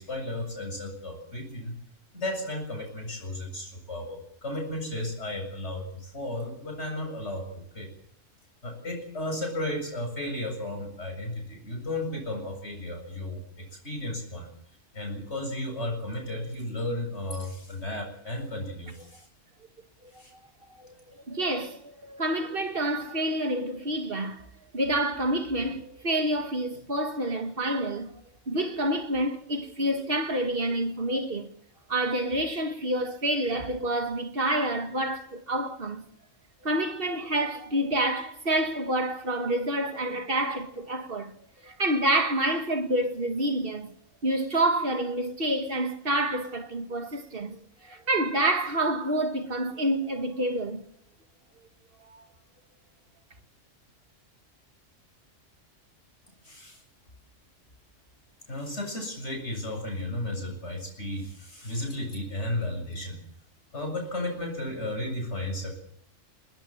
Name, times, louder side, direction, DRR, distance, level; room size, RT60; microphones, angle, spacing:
voice 1, 0.0-1.7 2.1-7.9 8.6-14.5 14.9-19.3 20.1-20.3 56.4-56.8 58.5-63.2 63.7-65.8, left 1 dB, 60° left, 7.8 m, -34 dB
voice 2, 21.3-24.5 24.7-28.1 28.5-31.5 31.9-36.0 36.6-41.3 41.6-43.9 44.2-47.6 47.8-50.8 52.1-52.2, right 1 dB, 45° right, 2.1 m, -28 dB
21.5 x 20.0 x 7.5 m
omnidirectional pair, 1.3 m